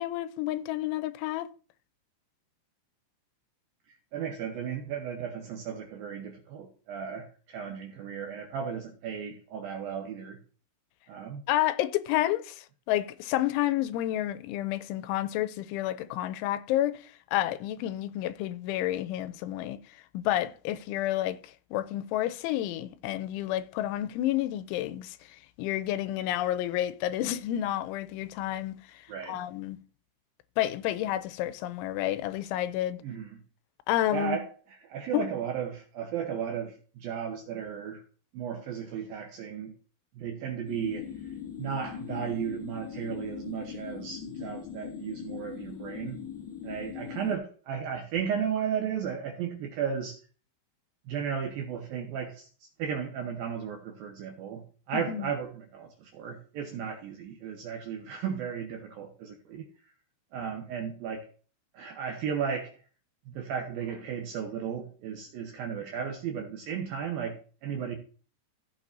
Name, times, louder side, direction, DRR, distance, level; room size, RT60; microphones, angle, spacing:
voice 1, 0.0-1.5 11.5-19.8 20.1-29.8 30.6-33.0 33.9-34.4 35.1-35.3 54.9-55.3, left 13 dB, 90° left, 3.1 m, -30 dB
voice 2, 4.1-10.4 11.1-11.4 29.1-29.4 33.0-33.4 34.1-34.5 34.8-38.0 38.3-39.7 40.1-41.1 41.6-46.2 46.6-50.2 51.1-52.5 52.8-59.7 60.3-61.3 61.7-62.8 63.3-68.0, right 7 dB, 75° right, 2.2 m, -35 dB
sound 1, 40.7-47.4, left 9 dB, 70° left, 2.4 m, -40 dB
15.5 x 7.2 x 2.7 m
omnidirectional pair, 5.4 m